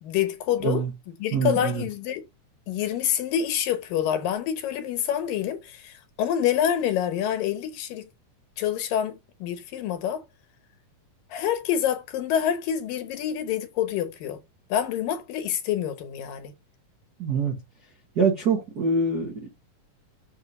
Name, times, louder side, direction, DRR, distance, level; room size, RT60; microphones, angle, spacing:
voice 1, 0.0-2.2 2.7-8.1 8.6-10.2 11.3-14.4 14.7-16.5, left 10 dB, 80° left, 2.7 m, -27 dB
voice 2, 1.3-1.8 17.2-17.6 18.1-19.5, right 4 dB, 85° right, 0.8 m, -24 dB
6.4 x 4.5 x 5.3 m
omnidirectional pair, 3.9 m